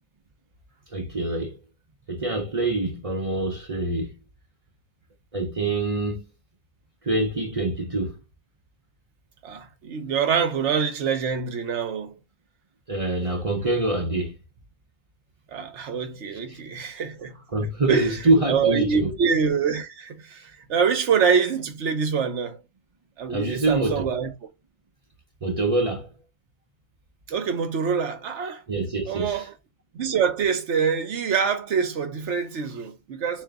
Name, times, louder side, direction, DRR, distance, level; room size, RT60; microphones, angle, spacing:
voice 1, 0.9-1.6 2.1-4.1 5.3-6.2 7.0-8.2 12.9-14.3 16.5-16.6 17.5-19.1 23.3-24.0 25.4-26.1 28.7-29.4, right 2 dB, 40° right, 0.5 m, -25 dB
voice 2, 9.4-12.2 15.5-17.4 17.9-18.2 18.5-22.6 23.2-24.3 27.3-28.6 29.1-29.5 29.9-33.4, right 6 dB, 65° right, 1.0 m, -25 dB
3.8 x 2.7 x 3.4 m
omnidirectional pair, 1.3 m